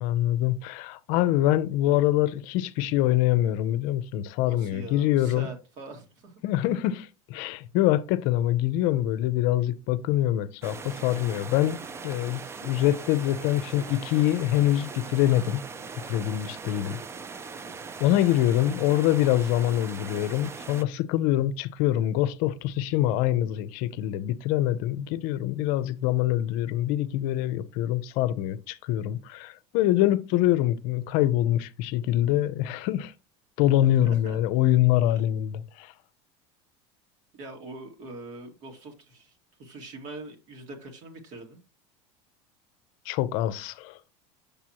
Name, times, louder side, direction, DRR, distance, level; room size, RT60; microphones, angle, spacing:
voice 1, 0.0-5.5 6.4-11.8 12.0-15.6 16.1-17.0 18.0-33.1 33.6-35.9 43.1-43.9, left 13 dB, 65° left, 0.6 m, -25 dB
voice 2, 4.4-6.4 18.1-18.3 34.0-34.4 35.2-35.3 37.3-41.6, right 2 dB, 55° right, 2.2 m, -43 dB
sound 1, 10.6-20.8, right 5 dB, 15° right, 0.5 m, -40 dB
6.8 x 6.1 x 2.9 m
supercardioid pair, 135°, 15 cm